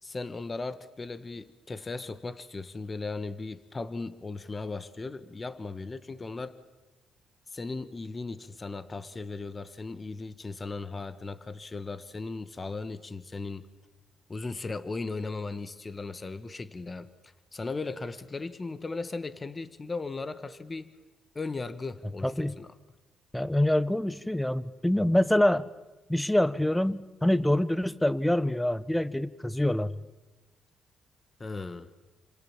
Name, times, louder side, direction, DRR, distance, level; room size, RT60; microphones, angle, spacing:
voice 1, 0.0-6.6 7.5-13.7 14.3-20.9 21.3-22.7 31.4-31.9, left 3 dB, 25° left, 12 dB, 1.4 m, -37 dB
voice 2, 22.2-22.6 23.3-25.7 26.1-30.0, left 1 dB, 5° left, 17 dB, 1.0 m, -25 dB
29.5 x 26.0 x 7.4 m, 1.1 s
cardioid pair, 90°, 0 cm